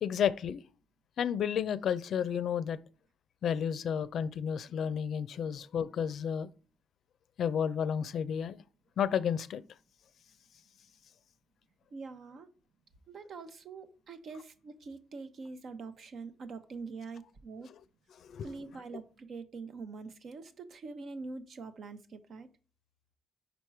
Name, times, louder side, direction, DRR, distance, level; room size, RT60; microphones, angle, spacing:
voice 1, 0.0-0.6 1.2-2.8 3.4-6.5 7.4-8.6 9.0-9.6 18.2-18.5, left 8 dB, 65° left, 0.4 m, -31 dB
voice 2, 11.9-12.5 13.1-17.7 18.4-22.5, right 4 dB, 60° right, 0.8 m, -44 dB
5.2 x 4.4 x 4.7 m
cardioid pair, 90°, 0 cm